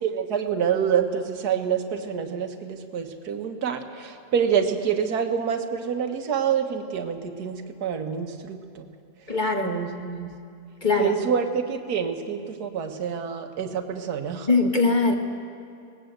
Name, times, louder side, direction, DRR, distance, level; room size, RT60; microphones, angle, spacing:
voice 1, 0.0-8.9 9.6-10.3 11.0-14.5, right 7 dB, 65° right, 6 dB, 1.7 m, -27 dB
voice 2, 9.3-9.8 10.8-11.2 14.5-15.1, left 3 dB, 30° left, 3 dB, 1.4 m, -21 dB
19.5 x 19.0 x 8.0 m, 2.5 s
omnidirectional pair, 1.8 m